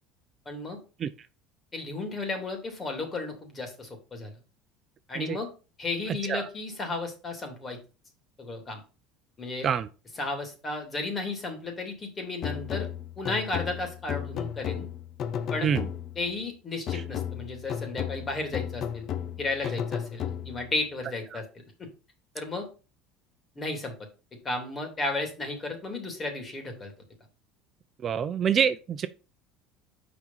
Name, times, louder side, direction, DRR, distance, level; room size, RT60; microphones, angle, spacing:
voice 1, 0.4-0.8 1.7-4.3 5.1-5.5 5.8-7.8 8.4-8.8 9.4-9.7 10.2-12.9 13.2-14.9 15.5-15.7 16.2-19.1 19.4-21.9 22.3-22.7 23.5-24.0 24.4-26.9, left 2 dB, 30° left, 3.1 m, -33 dB
voice 2, 6.1-6.5 9.6-9.9 15.6-15.9 16.9-17.0 28.0-29.1, right 7 dB, 40° right, 0.6 m, -27 dB
sound 1, 12.4-16.3 16.9-20.7, left 9 dB, 50° left, 0.6 m, -34 dB
5.9 x 5.3 x 5.7 m
supercardioid pair, 90°, 0 cm